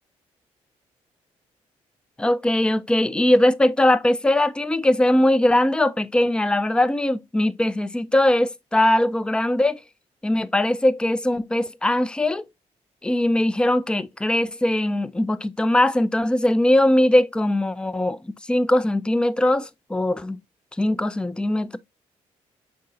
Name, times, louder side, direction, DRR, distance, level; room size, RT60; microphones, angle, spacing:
voice 1, 2.2-9.8 10.2-12.5 13.0-18.2 18.5-20.4 20.8-21.8, left 1 dB, 5° left, 0.4 m, -20 dB
5.3 x 3.7 x 2.6 m
hypercardioid pair, 50°, 15 cm